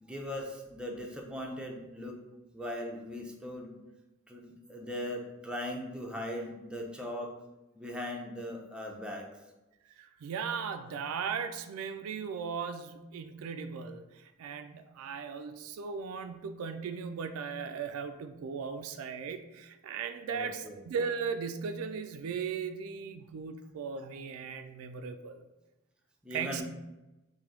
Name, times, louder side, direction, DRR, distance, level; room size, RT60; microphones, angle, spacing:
voice 1, 0.0-2.2 2.5-3.8 4.3-7.3 7.8-9.3 20.3-20.8 26.2-26.6, left 1 dB, 5° right, 0 dB, 0.4 m, -39 dB
voice 2, 10.0-25.4 26.3-26.6, right 6 dB, 75° right, 9 dB, 0.3 m, -37 dB
3.4 x 2.6 x 3.7 m, 1.0 s
head